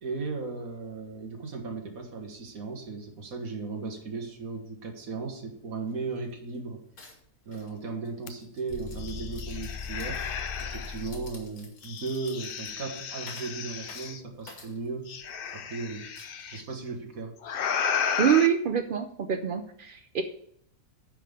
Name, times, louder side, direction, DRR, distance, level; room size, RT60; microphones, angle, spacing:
voice 1, 0.0-6.8 7.5-10.2 10.6-15.1 15.5-16.1 16.5-17.3, right 4 dB, 65° right, 3 dB, 1.8 m, -36 dB
sound 1, 5.8-5.9 6.2-6.6 7.0-15.5 16.2-16.8, left 3 dB, 75° left, 2.2 m, -52 dB
sound 2, 8.3-8.4 8.7-11.1 11.8-14.2 15.1-16.6 17.4-18.5, left 7 dB, 60° left, 0.6 m, -33 dB
sound 3, 8.7-11.5, left 4 dB, 40° left, 0.9 m, -41 dB
voice 2, 18.2-20.2, right 8 dB, 85° right, 7 dB, 0.4 m, -25 dB
10.0 x 3.7 x 6.5 m, 0.71 s
omnidirectional pair, 1.6 m